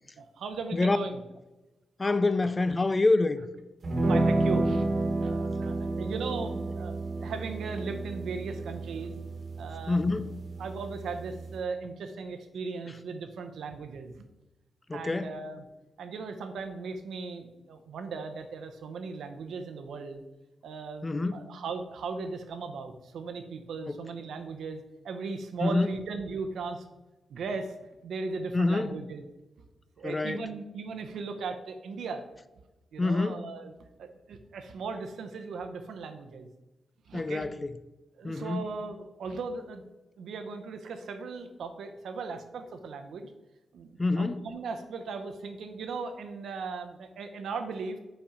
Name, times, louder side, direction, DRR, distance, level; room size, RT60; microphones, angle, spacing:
voice 1, 0.2-1.2 4.1-4.9 5.2-9.1 9.6-10.0 10.6-14.2 14.9-15.7 16.0-20.2 20.6-26.8 27.3-27.7 28.0-29.2 30.0-32.2 32.9-33.7 34.0-36.5 37.1-37.4 38.2-39.8 40.2-43.3 43.7-43.9 44.2-48.0, right 4 dB, 80° right, 0.8 m, -37 dB
voice 2, 2.0-3.5 9.9-10.3 14.9-15.3 21.0-21.5 23.9-24.0 25.6-25.9 28.5-28.9 30.0-30.4 33.0-33.4 37.1-37.7 38.2-38.7 44.0-44.4, left 3 dB, 20° left, 0.4 m, -26 dB
sound 1, 3.8-11.6, right 2 dB, 45° right, 1.3 m, -31 dB
5.8 x 4.2 x 5.0 m
wide cardioid pair, 145°, 0 cm